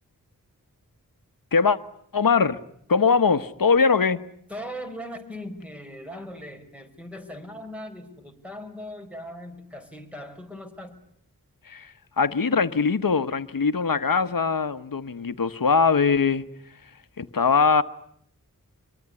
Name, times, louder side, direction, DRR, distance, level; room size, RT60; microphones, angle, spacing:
voice 1, 2.1-2.6 2.9-4.2 11.7-16.4 17.2-17.8, left 5 dB, 75° left, 1.2 m, -21 dB
voice 2, 4.5-11.0, equal, 5° right, 5.1 m, -39 dB
25.0 x 23.0 x 9.8 m
wide cardioid pair, 75°, 35 cm